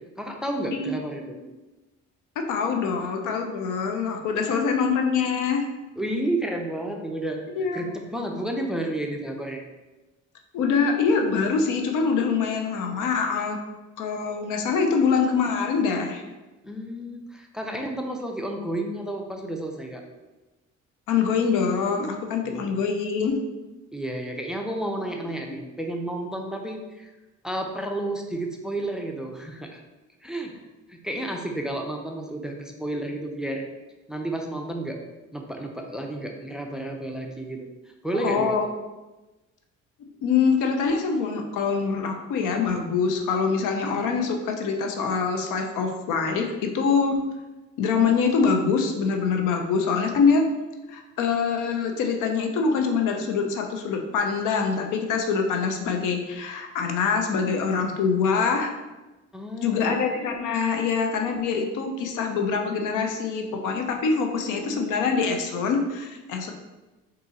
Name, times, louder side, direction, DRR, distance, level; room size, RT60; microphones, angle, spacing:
voice 1, 0.2-1.4 6.0-7.4 7.7-9.6 16.6-20.0 22.4-22.5 23.9-27.1 27.4-29.8 30.2-30.5 30.9-33.7 34.1-35.0 35.3-37.7 38.0-38.6 59.3-59.9, right 1 dB, ahead, 2 dB, 0.5 m, -31 dB
voice 2, 0.7-1.3 2.4-5.6 7.6-7.9 10.5-13.6 14.0-16.2 21.1-23.4 38.2-38.6 40.2-47.2 47.8-50.4 50.9-58.7 59.6-66.5, left 5 dB, 85° left, 4 dB, 0.6 m, -24 dB
3.7 x 2.7 x 4.1 m, 1.1 s
cardioid pair, 90°, 30 cm